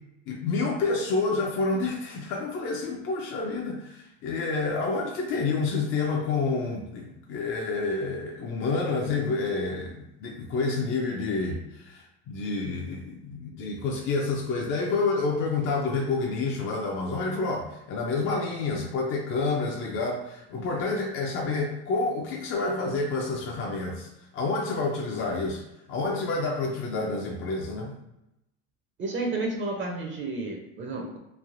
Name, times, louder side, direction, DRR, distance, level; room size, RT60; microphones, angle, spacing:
voice 1, 0.3-24.1 24.3-25.6 25.9-27.9, left 3 dB, 35° left, -1 dB, 0.5 m, -29 dB
voice 2, 29.0-31.2, right 2 dB, 35° right, 1 dB, 0.6 m, -31 dB
3.2 x 2.1 x 2.5 m, 0.85 s
hypercardioid pair, 95°, 36 cm